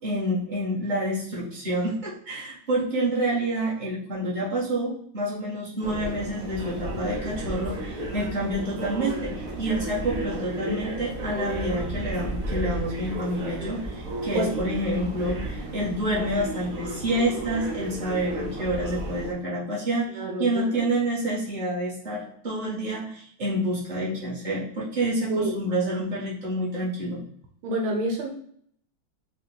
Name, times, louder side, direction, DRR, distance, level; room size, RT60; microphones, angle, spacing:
voice 1, 0.0-27.2, right 1 dB, 25° right, -7 dB, 1.8 m, -28 dB
sound 1, 5.8-19.3, right 1 dB, 50° right, 1.2 m, -33 dB
voice 2, 20.1-20.9 25.3-25.6 27.6-28.3, right 2 dB, 80° right, 0 dB, 1.7 m, -28 dB
4.8 x 2.9 x 3.8 m, 0.63 s
omnidirectional pair, 2.2 m